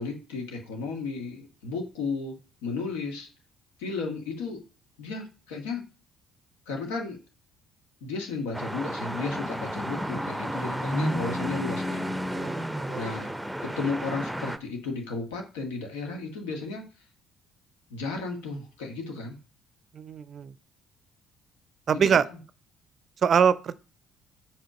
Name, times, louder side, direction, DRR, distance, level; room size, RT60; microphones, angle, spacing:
voice 1, 0.0-2.3 2.6-3.3 3.8-4.6 5.0-5.8 6.7-7.2 8.0-12.1 12.9-13.3 13.6-16.8 17.9-19.4 21.9-22.4, left 3 dB, 75° left, 1.6 m, -34 dB
sound 1, 8.5-14.6, equal, 5° right, 0.7 m, -32 dB
voice 2, 12.3-13.3 19.9-20.5 21.9-22.3 23.2-23.7, right 7 dB, 45° right, 0.4 m, -24 dB
5.6 x 5.1 x 5.0 m
figure-of-eight pair, 50°, 0 cm